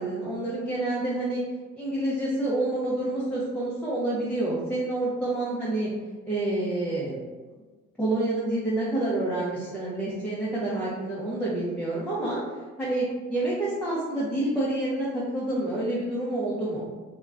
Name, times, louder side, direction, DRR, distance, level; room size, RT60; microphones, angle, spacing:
voice 1, 0.0-1.4 1.8-5.9 6.3-7.2 8.0-12.4 12.8-16.9, right 2 dB, 5° left, -7 dB, 0.6 m, -28 dB
2.3 x 2.3 x 3.2 m, 1.3 s
cardioid pair, 90°, 30 cm